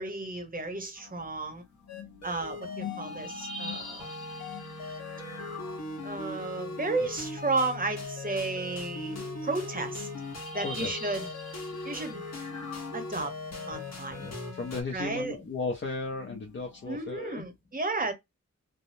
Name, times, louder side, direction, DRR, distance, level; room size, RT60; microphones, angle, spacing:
voice 1, 0.0-1.6 2.2-4.1 6.0-10.1 10.5-11.3 11.8-12.2 12.9-13.3 13.7-14.2 14.9-15.3 16.9-18.1, right 3 dB, 30° right, 0.9 m, -33 dB
sound 1, 1.0-8.0 8.5-8.6 8.9-13.8 16.0-17.0, left 3 dB, 85° left, 1.1 m, -45 dB
sound 2, 1.9-14.8, left 2 dB, 60° left, 1.2 m, -39 dB
voice 2, 10.6-10.9 14.2-17.4, left 3 dB, 40° left, 0.7 m, -35 dB
3.4 x 2.1 x 2.6 m
wide cardioid pair, 135°, 30 cm